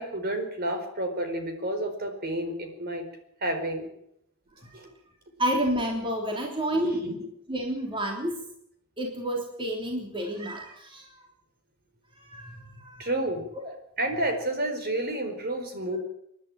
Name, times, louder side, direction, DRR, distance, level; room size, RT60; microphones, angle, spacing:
voice 1, 0.0-3.0 3.4-3.9 4.7-4.9 6.7-7.2 13.0-13.4 14.0-16.0, right 1 dB, 45° right, 5 dB, 4.3 m, -30 dB
voice 2, 5.4-7.0 7.5-8.4 9.0-11.2 12.2-13.1 13.5-13.7, equal, 25° right, 1 dB, 3.5 m, -30 dB
28.5 x 11.5 x 9.0 m, 0.76 s
head